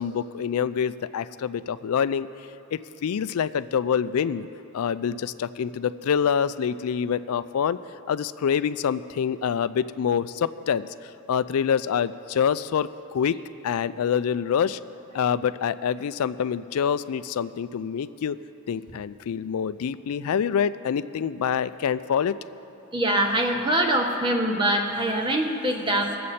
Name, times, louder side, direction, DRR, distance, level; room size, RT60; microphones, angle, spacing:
voice 1, 0.0-2.3 2.7-4.5 4.7-7.8 8.1-13.4 13.6-14.8 15.1-18.4 18.7-22.3, left 7 dB, 80° left, 14 dB, 0.4 m, -26 dB
voice 2, 22.9-26.2, right 1 dB, 20° right, 2 dB, 1.2 m, -23 dB
22.5 x 7.6 x 4.2 m, 2.9 s
head